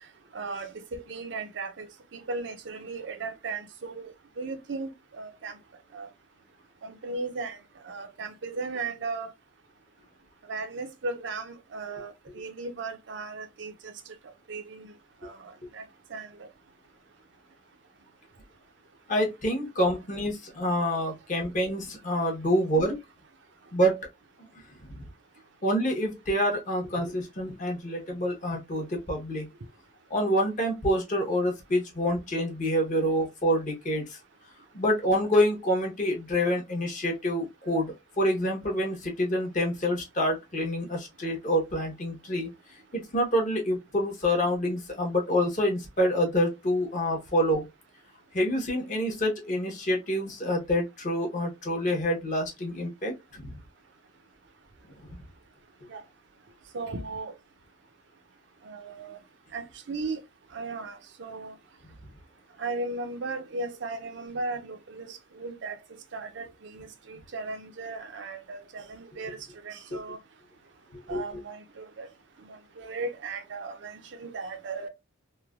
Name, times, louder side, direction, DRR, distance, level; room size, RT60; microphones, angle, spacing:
voice 1, 0.3-5.6 5.9-6.1 6.8-7.6 7.8-9.3 10.4-13.9 14.5-14.9 15.2-16.5 55.9-56.0 56.7-57.3 58.6-59.2 59.5-60.2 60.5-61.6 62.6-65.8 66.1-70.2 71.1-72.1 72.4-74.9, right 3 dB, 60° right, 0.5 m, -36 dB
voice 2, 19.1-23.0 23.7-24.1 24.4-24.5 24.9-25.1 25.6-29.5 30.1-34.2 34.7-42.5 42.9-47.7 48.3-53.6 69.9-70.0 70.9-71.2, equal, 40° left, 0.9 m, -27 dB
3.1 x 2.1 x 2.3 m
head